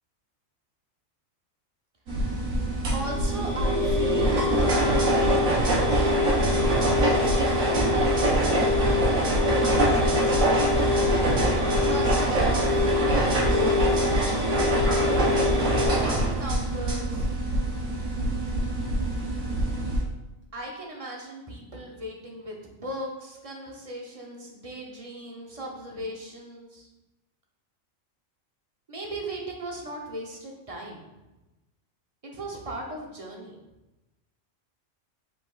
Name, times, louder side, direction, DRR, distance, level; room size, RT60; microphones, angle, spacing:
sound 1, 2.1-20.0, equal, 80° right, 1.3 m, -23 dB
voice 1, 2.9-5.8 7.2-8.8 9.5-11.1 11.8-14.2 16.0-17.3 20.5-26.9 28.9-31.0 32.2-33.5, right 1 dB, 35° right, -1 dB, 0.7 m, -37 dB
5.2 x 4.0 x 2.4 m, 1.0 s
omnidirectional pair, 1.3 m